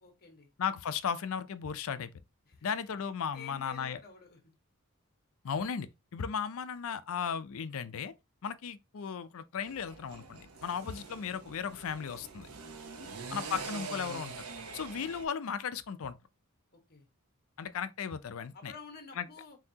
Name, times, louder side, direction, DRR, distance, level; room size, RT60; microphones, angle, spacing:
voice 1, 0.0-0.5 2.4-2.7 3.0-3.1 3.3-4.5 12.8-13.2 16.7-17.1 18.5-19.6, left 5 dB, 45° left, 1.3 m, -51 dB
voice 2, 0.6-2.1 2.6-4.0 5.4-8.1 8.4-12.5 13.3-14.3 14.7-16.2 17.6-18.7 19.2-19.3, left 7 dB, 70° left, 0.5 m, -36 dB
sound 1, 9.7-15.3, right 4 dB, 90° right, 0.8 m, -44 dB
5.7 x 2.7 x 2.7 m
head